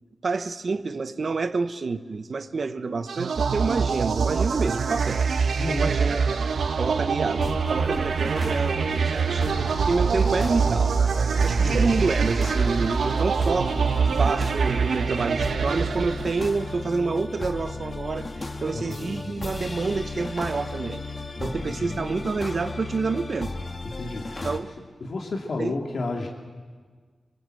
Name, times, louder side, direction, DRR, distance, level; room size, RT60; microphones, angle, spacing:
voice 1, 0.2-5.3 5.7-6.4 6.8-11.0 11.4-13.7 14.2-21.0 21.4-23.5 24.4-24.7 25.6-25.8, right 4 dB, 55° right, 10 dB, 1.1 m, -28 dB
sound 1, 3.1-16.7, right 5 dB, 85° right, 1.2 m, -24 dB
voice 2, 5.6-5.9 11.6-12.0 18.7-19.1 21.4-21.9 23.9-24.5 25.0-26.3, left 2 dB, 60° left, 0 dB, 2.6 m, -31 dB
sound 2, 7.2-24.6, left 2 dB, 35° left, 2.1 m, -35 dB
26.0 x 24.0 x 7.8 m, 1.5 s
wide cardioid pair, 110°, 0 cm